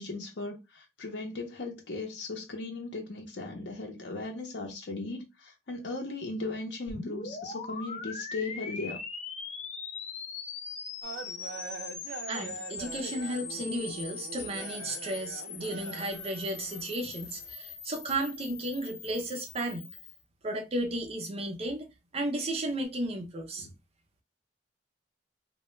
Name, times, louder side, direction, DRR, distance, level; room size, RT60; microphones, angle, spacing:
voice 1, 0.0-9.0 12.4-12.5 13.5-13.6 23.6-23.7, left 2 dB, 80° left, 0.6 m, -37 dB
sound 1, 6.9-20.2, left 5 dB, 40° left, 0.4 m, -41 dB
sound 2, 11.0-17.5, right 6 dB, 90° right, 0.3 m, -44 dB
voice 2, 12.3-19.9 20.4-23.7, right 1 dB, 35° right, 0.5 m, -34 dB
2.2 x 2.0 x 3.0 m
head